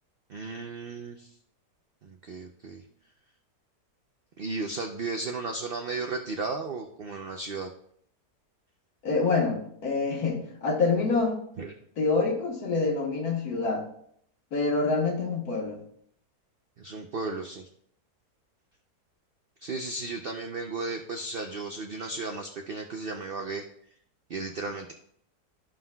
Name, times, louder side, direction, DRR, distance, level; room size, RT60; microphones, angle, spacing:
voice 1, 0.3-1.3 2.0-2.8 4.4-7.7 11.6-11.7 16.8-17.6 19.6-23.6 24.3-24.9, right 3 dB, 65° right, 3 dB, 0.5 m, -34 dB
voice 2, 9.0-11.4 12.0-13.9 14.5-15.8, left 3 dB, 70° left, 1 dB, 1.8 m, -26 dB
13.0 x 5.6 x 2.3 m, 0.67 s
omnidirectional pair, 1.7 m